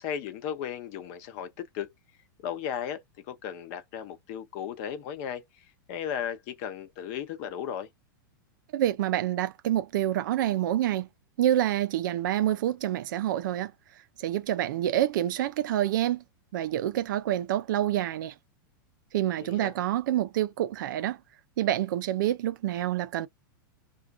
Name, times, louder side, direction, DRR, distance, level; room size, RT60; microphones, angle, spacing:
voice 1, 0.0-1.9 2.4-3.0 3.3-7.9 19.4-19.7, left 9 dB, 40° left, 0.6 m, -35 dB
voice 2, 8.7-11.1 11.4-13.7 14.2-16.2 16.5-18.3 19.1-21.2 21.6-23.3, right 12 dB, 60° right, 0.4 m, -27 dB
2.4 x 2.2 x 2.2 m
supercardioid pair, 160°, 12 cm